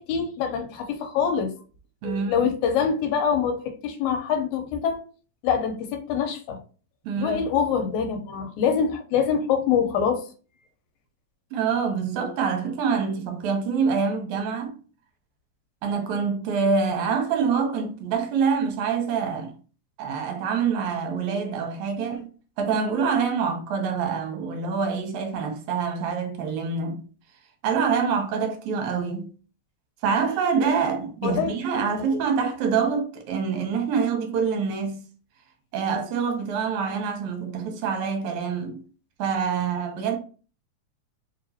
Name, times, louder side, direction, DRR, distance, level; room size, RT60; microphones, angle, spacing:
voice 1, 0.0-1.5 2.0-5.0 5.4-6.6 7.2-10.2 31.2-31.5 32.1-32.2, left 7 dB, 80° left, 2.0 m, -25 dB
voice 2, 2.0-2.5 7.0-7.4 11.5-14.8 15.8-19.5 20.0-22.3 22.6-27.0 27.6-29.3 30.0-35.0 35.7-38.8 39.2-40.2, right 6 dB, 80° right, 2.1 m, -26 dB
4.5 x 2.8 x 2.7 m
omnidirectional pair, 3.5 m